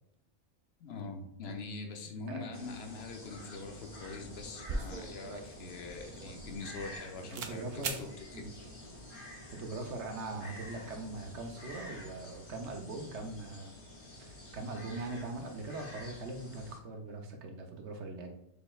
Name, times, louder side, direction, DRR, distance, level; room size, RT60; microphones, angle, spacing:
voice 1, 0.8-8.5 12.6-12.8, left 3 dB, 70° left, 4 dB, 0.9 m, -44 dB
voice 2, 2.3-2.8 7.2-8.0 8.3-8.5 9.5-13.7 14.2-18.3, right 2 dB, 90° right, 3 dB, 1.1 m, -41 dB
sound 1, 2.5-16.8, left 1 dB, 50° left, 1.3 m, -49 dB
sound 2, 4.7-7.0 7.3-7.6 7.8-8.1, right 4 dB, 60° right, 0.6 m, -40 dB
6.7 x 3.1 x 2.3 m, 0.80 s
omnidirectional pair, 1.1 m